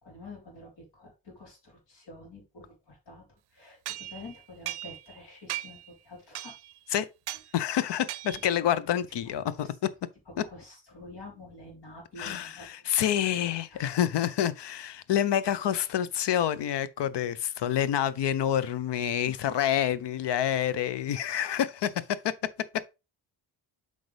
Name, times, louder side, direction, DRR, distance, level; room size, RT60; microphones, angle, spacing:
voice 1, 0.0-3.2 3.5-6.5 9.3-9.7 10.3-13.1 13.7-14.0 19.1-19.5, left 2 dB, 70° left, 3.8 m, -48 dB
sound 1, 3.9-5.2 5.5-5.9 6.4-6.8 7.3-7.5 8.1-8.6, right 14 dB, 70° right, 0.5 m, -38 dB
voice 2, 7.5-9.9 12.2-22.3, left 10 dB, 85° left, 0.6 m, -28 dB
7.9 x 5.0 x 3.3 m
wide cardioid pair, 155°, 41 cm